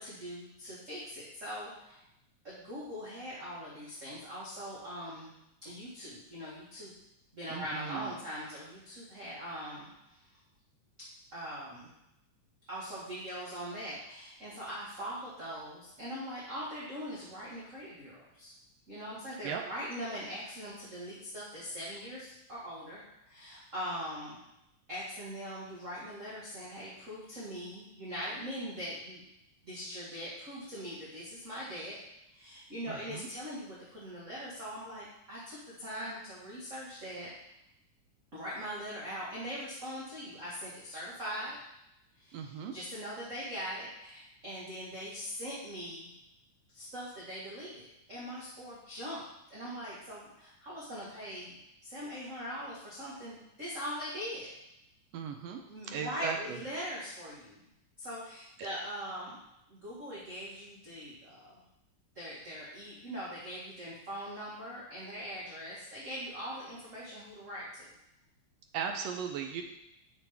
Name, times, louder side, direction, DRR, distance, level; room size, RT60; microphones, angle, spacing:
voice 1, 0.0-2.0 2.4-5.3 5.6-6.9 7.3-10.2 11.3-11.9 12.7-18.5 18.9-24.4 24.9-29.2 29.6-32.0 32.3-37.3 38.3-41.6 42.1-46.1 46.7-49.2 49.5-54.5 55.7-57.6 58.0-59.4 59.7-61.6 62.1-67.9, equal, 40° right, -7 dB, 1.1 m, -41 dB
voice 2, 7.5-8.1 19.4-19.6 32.9-33.3 42.3-42.7 55.1-56.6 68.7-69.6, right 7 dB, 80° right, 4 dB, 1.5 m, -37 dB
7.2 x 6.1 x 3.4 m, 0.84 s
omnidirectional pair, 3.4 m